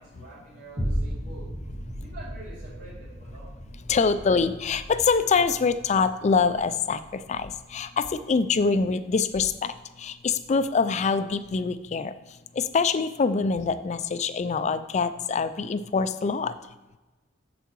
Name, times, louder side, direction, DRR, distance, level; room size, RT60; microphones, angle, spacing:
voice 1, 0.0-1.5 2.0-3.6, right 2 dB, 65° right, -10 dB, 2.6 m, -46 dB
sound 1, 0.8-9.3 9.8-9.9, equal, 45° right, 2.1 m, -36 dB
voice 2, 3.9-12.1 12.5-16.5, left 5 dB, 35° left, 12 dB, 0.3 m, -25 dB
8.1 x 6.9 x 3.0 m, 1.1 s
head